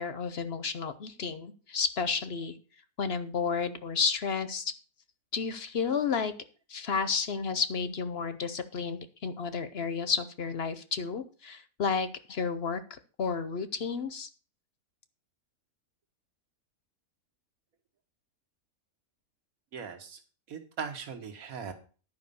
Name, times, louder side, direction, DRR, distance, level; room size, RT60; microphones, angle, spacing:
voice 1, 0.0-2.6 3.0-4.7 5.3-6.3 6.7-14.3, left 5 dB, 50° left, 12 dB, 0.9 m, -31 dB
voice 2, 19.7-20.2 20.5-21.7, right 6 dB, 70° right, 6 dB, 1.8 m, -39 dB
11.0 x 5.4 x 6.9 m, 0.37 s
omnidirectional pair, 1.6 m